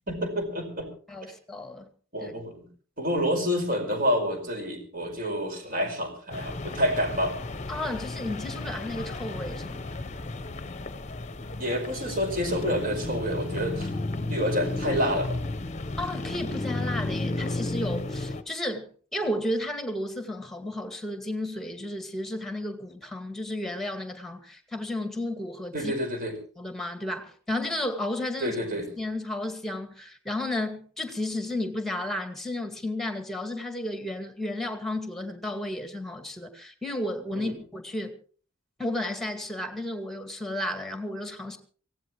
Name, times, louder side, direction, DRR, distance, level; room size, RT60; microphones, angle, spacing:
voice 1, 0.1-0.9 2.1-2.7 3.0-7.3 11.6-13.9 14.3-15.4 25.7-26.3 28.4-28.9 37.3-37.5, equal, 45° right, 5.1 m, -28 dB
voice 2, 1.1-1.9 2.2-2.3 7.7-9.8 16.0-25.9 26.6-28.6 29.0-38.1 38.8-41.6, left 1 dB, ahead, 2.0 m, -33 dB
sound 1, 6.3-18.4, left 2 dB, 35° left, 0.9 m, -33 dB
24.0 x 17.0 x 3.1 m
head